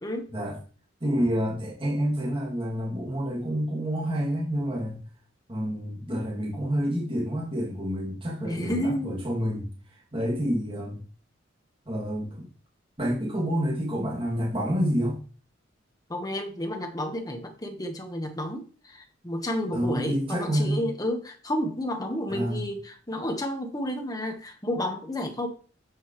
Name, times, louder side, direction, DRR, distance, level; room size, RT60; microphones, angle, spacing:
voice 1, 0.0-0.3 8.4-9.1 16.1-25.5, left 1 dB, 20° left, 1.4 m, -31 dB
voice 2, 1.0-5.0 5.5-9.7 10.1-11.0 11.9-12.5 13.0-15.2 19.7-20.9 22.3-22.6, equal, 30° right, 2.6 m, -28 dB
8.1 x 8.1 x 3.2 m
head